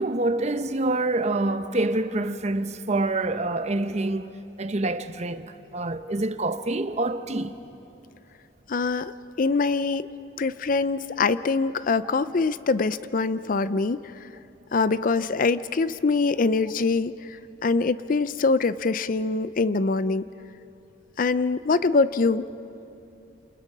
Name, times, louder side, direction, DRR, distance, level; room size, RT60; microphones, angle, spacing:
voice 1, 0.0-7.6 12.0-12.1, right 2 dB, 35° right, 0.8 m, -26 dB
voice 2, 8.7-9.1 9.4-10.1 10.4-14.0 14.7-17.4 17.6-20.2 21.2-22.4, left 4 dB, 45° left, 0.5 m, -24 dB
28.5 x 27.5 x 5.5 m
head